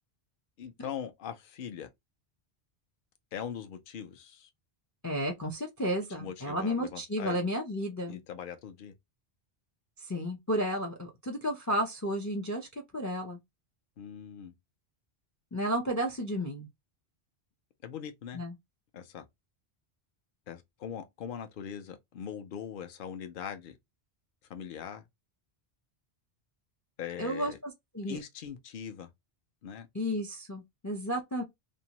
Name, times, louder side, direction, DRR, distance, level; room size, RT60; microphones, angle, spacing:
voice 1, 0.6-1.9 3.3-4.5 6.2-7.4 8.1-8.9 14.0-14.5 17.8-18.4 18.9-19.3 20.5-23.8 24.5-25.0 27.0-27.6 28.1-29.1 29.6-29.9, left 8 dB, 60° left, 0.7 m, -41 dB
voice 2, 5.0-8.2 10.1-12.7 12.9-13.4 15.5-16.7 18.3-18.5 27.2-28.2 29.9-31.4, equal, 30° left, 0.3 m, -32 dB
2.6 x 2.1 x 2.8 m
omnidirectional pair, 1.1 m